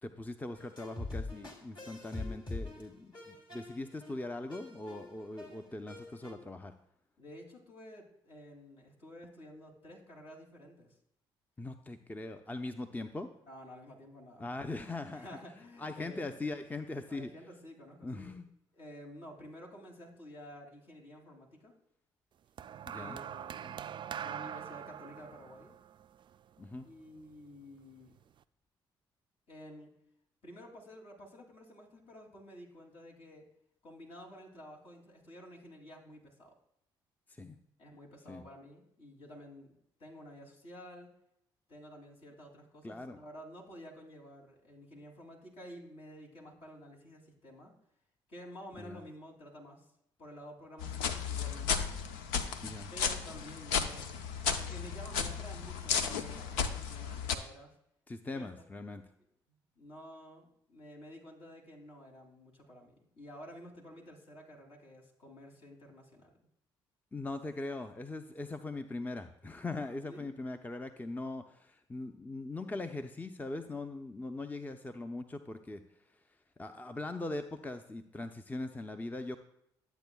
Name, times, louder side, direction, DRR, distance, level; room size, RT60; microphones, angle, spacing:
voice 1, 0.0-6.7 11.6-13.3 14.4-15.4 15.8-17.3 18.0-18.5 22.8-23.2 26.6-26.9 37.3-37.6 38.3-38.4 42.8-43.2 48.8-49.0 52.6-52.9 58.1-59.0 67.1-75.8 76.6-79.4, left 2 dB, 15° left, 7 dB, 0.6 m, -41 dB
sound 1, 0.5-6.3, left 2 dB, 45° left, 2.8 m, -43 dB
voice 2, 7.2-11.0 13.4-14.5 15.1-16.4 17.1-18.3 18.7-21.7 22.9-23.9 24.2-25.8 26.8-28.1 29.5-29.9 30.4-33.5 33.8-36.5 37.8-39.7 40.0-41.1 41.7-47.7 48.3-49.8 50.2-51.9 52.9-54.1 54.6-57.7 58.3-58.5 59.7-66.3 70.1-70.3, equal, 60° left, -2 dB, 2.7 m, -51 dB
sound 2, 22.6-27.0 27.9-28.2, right 9 dB, 45° right, 0.4 m, -43 dB
sound 3, 50.8-57.4, left 6 dB, 85° left, 0.6 m, -34 dB
12.5 x 8.1 x 2.3 m, 0.77 s
hypercardioid pair, 55°, 11 cm